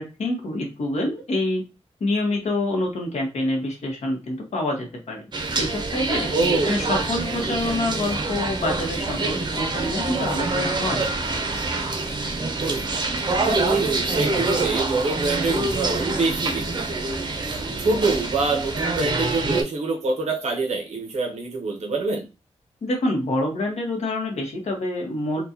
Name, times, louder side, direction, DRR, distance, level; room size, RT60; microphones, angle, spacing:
voice 1, 0.0-1.6 2.0-5.3 5.6-6.3 6.7-11.1 22.8-25.4, left 1 dB, 85° left, 0 dB, 1.2 m, -26 dB
sound 1, 5.3-19.6, right 3 dB, 40° right, 0.6 m, -26 dB
voice 2, 6.3-6.8 12.6-13.0 13.4-16.6 16.9-17.1 17.8-22.2, right 3 dB, 85° right, 1 dB, 0.9 m, -25 dB
4.3 x 2.3 x 2.7 m, 0.28 s
wide cardioid pair, 175°, 11 cm